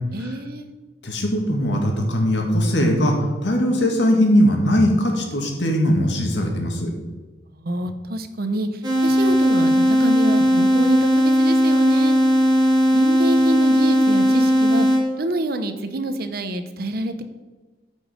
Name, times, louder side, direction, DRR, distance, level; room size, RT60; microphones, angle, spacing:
voice 1, 0.1-0.7 7.5-8.7 9.0-12.1 12.9-14.9 15.2-17.2, right 1 dB, 55° right, 9 dB, 0.9 m, -27 dB
voice 2, 1.0-3.1 3.4-6.9, equal, 80° left, 2 dB, 2.1 m, -20 dB
sound 1, 8.8-15.0, equal, 25° right, 2.4 m, -17 dB
13.0 x 5.4 x 5.2 m, 1.3 s
head